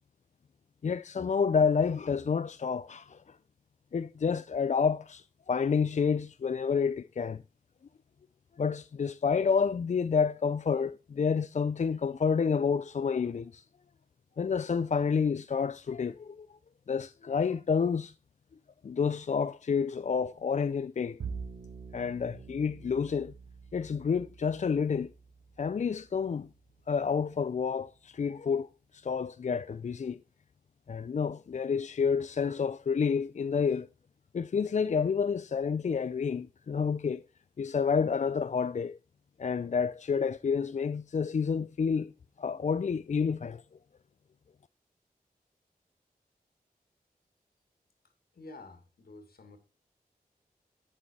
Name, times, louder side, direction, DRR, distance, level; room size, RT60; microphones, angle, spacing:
voice 1, 0.8-3.4 3.9-7.4 8.6-13.6 14.4-16.6 16.9-18.1 18.8-21.2 21.9-23.3 23.7-25.1 25.6-26.5 26.9-30.2 30.9-33.9 34.3-37.2 37.6-39.0 39.4-42.1 42.4-43.6, left 6 dB, 50° left, 0.4 m, -29 dB
Bowed string instrument, 21.2-27.6, right 5 dB, 85° right, 0.9 m, -46 dB
voice 2, 48.0-49.6, left 2 dB, 75° left, 2.0 m, -50 dB
8.7 x 7.2 x 4.2 m
cardioid pair, 40°, 16 cm